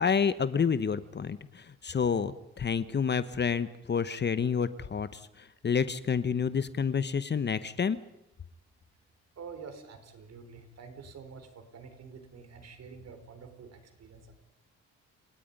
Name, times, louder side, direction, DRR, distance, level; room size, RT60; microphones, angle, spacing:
voice 1, 0.0-8.0, left 6 dB, 35° left, 14 dB, 1.0 m, -29 dB
voice 2, 9.4-14.3, right 5 dB, 55° right, 7 dB, 4.3 m, -47 dB
29.5 x 18.0 x 5.4 m, 0.88 s
cardioid pair, 90°, 30 cm